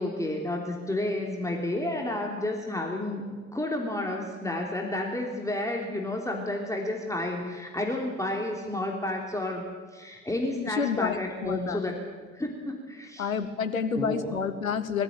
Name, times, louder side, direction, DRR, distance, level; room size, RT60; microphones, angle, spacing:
voice 1, 0.0-12.0 12.3-13.3 13.9-14.4, left 1 dB, 10° left, 0 dB, 3.4 m, -31 dB
voice 2, 10.6-11.8 13.2-15.0, left 6 dB, 80° left, 11 dB, 1.2 m, -29 dB
22.5 x 15.5 x 8.6 m, 1.5 s
figure-of-eight pair, 55°, 40 cm